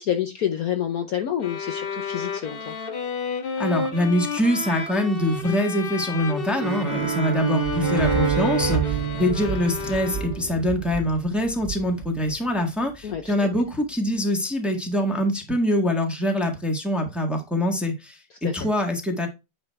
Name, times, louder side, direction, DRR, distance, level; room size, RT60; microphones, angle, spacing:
voice 1, 0.0-2.8 13.0-13.3 18.3-18.6, left 10 dB, 60° left, 1.1 m, -28 dB
sound 1, 1.4-10.6, left 5 dB, 40° left, 0.9 m, -31 dB
voice 2, 3.6-19.3, equal, ahead, 1.3 m, -24 dB
Bowed string instrument, 6.5-10.8, right 7 dB, 80° right, 2.7 m, -28 dB
sound 2, 7.6-13.6, right 7 dB, 25° right, 3.1 m, -33 dB
9.4 x 3.3 x 4.5 m
omnidirectional pair, 2.1 m